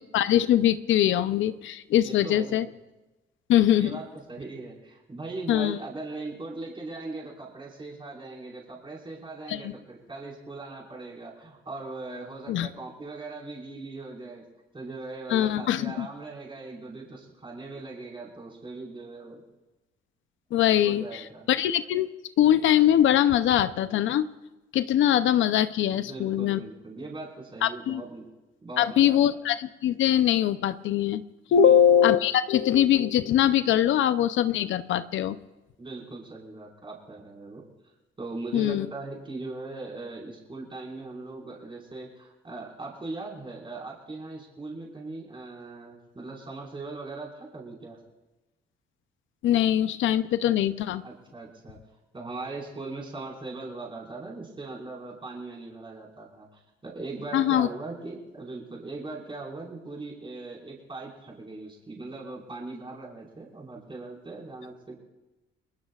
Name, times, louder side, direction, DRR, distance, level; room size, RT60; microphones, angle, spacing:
voice 1, 0.0-2.7 3.5-4.0 5.5-5.8 9.5-9.7 12.5-12.7 15.3-16.1 20.5-22.1 22.4-24.3 24.7-26.6 27.6-28.0 28.8-31.2 31.5-35.4 38.5-38.9 49.4-51.0 57.3-57.7, left 11 dB, 75° left, 12 dB, 0.7 m, -22 dB
voice 2, 2.0-2.7 3.8-14.4 14.7-19.4 20.7-21.5 25.9-28.3 28.6-29.4 31.5-32.0 35.8-37.6 38.2-48.0 50.4-50.5 51.0-51.8 52.1-65.0, right 3 dB, 25° right, -2 dB, 5.2 m, -40 dB
29.0 x 20.5 x 2.5 m, 1.1 s
cardioid pair, 90°, 20 cm